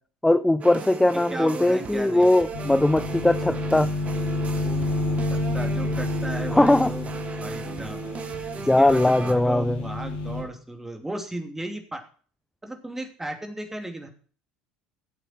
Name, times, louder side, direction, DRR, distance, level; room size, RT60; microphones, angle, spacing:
voice 1, 0.2-3.9 6.5-6.9 8.7-9.8, left 1 dB, 5° left, 0.6 m, -20 dB
sound 1, 0.6-9.3, right 5 dB, 35° right, 1.8 m, -36 dB
voice 2, 1.3-2.3 5.3-7.1 7.4-8.0 8.5-12.0 12.6-14.1, right 1 dB, 10° right, 2.9 m, -35 dB
sound 2, 2.5-10.4, left 2 dB, 75° left, 5.2 m, -29 dB
15.0 x 8.3 x 4.6 m
hypercardioid pair, 75°, 4 cm